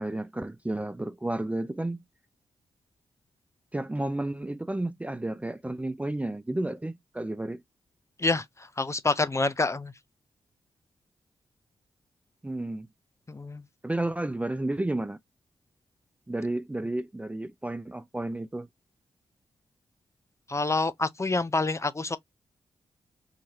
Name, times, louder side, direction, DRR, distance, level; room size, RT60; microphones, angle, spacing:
voice 1, 0.0-2.0 3.7-7.6 12.4-12.9 13.8-15.2 16.3-18.7, right 1 dB, 15° right, 0.4 m, -32 dB
voice 2, 8.8-9.9 13.3-13.6 20.5-22.2, left 3 dB, 30° left, 0.6 m, -27 dB
3.9 x 2.9 x 2.8 m
supercardioid pair, 45°, 10 cm